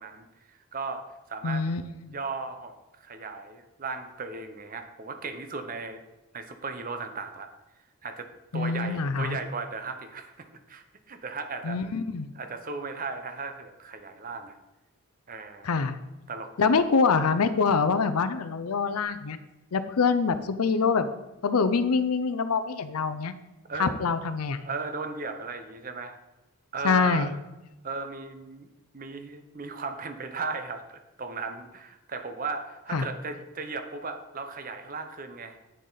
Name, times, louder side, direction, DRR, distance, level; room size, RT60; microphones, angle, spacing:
voice 1, 0.0-1.7 2.1-2.7 3.0-6.0 6.3-7.5 8.0-11.8 12.3-14.6 15.3-15.9 16.3-16.8 23.7-24.0 24.6-26.2 26.7-27.3 27.8-35.6, right 4 dB, 40° right, 8 dB, 0.8 m, -36 dB
voice 2, 1.4-2.1 8.5-9.4 11.6-12.3 15.6-16.0 16.6-19.4 19.7-21.1 21.4-23.3 23.8-24.6 26.8-27.3 32.9-33.1, left 5 dB, 85° left, 12 dB, 0.6 m, -25 dB
9.0 x 6.5 x 4.0 m, 1.0 s
head